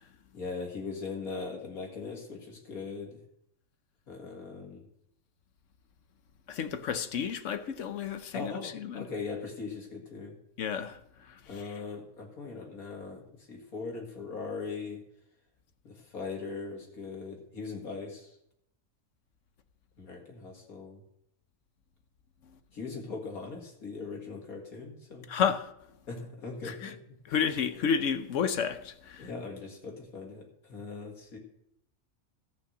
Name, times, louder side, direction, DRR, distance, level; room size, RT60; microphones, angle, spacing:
voice 1, 0.3-3.2 4.1-4.8 8.3-10.3 11.5-13.2 13.5-15.0 15.8-18.3 20.0-21.0 22.7-25.3 26.1-27.4 29.2-31.4, left 4 dB, 80° left, 2.5 m, -40 dB
voice 2, 6.5-9.0 10.6-11.0 25.3-25.7 26.6-26.7 27.3-28.9, left 7 dB, 65° left, 1.0 m, -30 dB
14.5 x 5.8 x 6.5 m
omnidirectional pair, 1.5 m